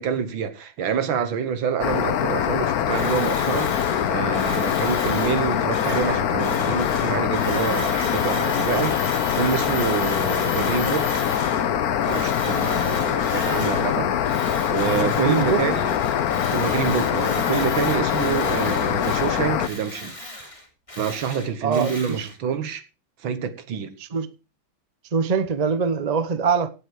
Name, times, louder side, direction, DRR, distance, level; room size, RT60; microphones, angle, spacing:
voice 1, 0.0-11.1 12.1-14.4 14.6-15.9 16.5-20.5 21.0-22.8 23.2-24.0, right 7 dB, 80° right, 2.0 m, -27 dB
sound 1, 1.8-19.7, left 9 dB, 60° left, 1.2 m, -23 dB
Tools, 2.9-11.7 12.0-14.0 14.2-22.3, left 1 dB, 15° left, 3.6 m, -36 dB
voice 2, 14.9-15.6 21.6-22.3 24.1-24.3 25.1-26.7, right 5 dB, 40° right, 0.6 m, -23 dB
17.5 x 7.8 x 4.7 m
omnidirectional pair, 2.1 m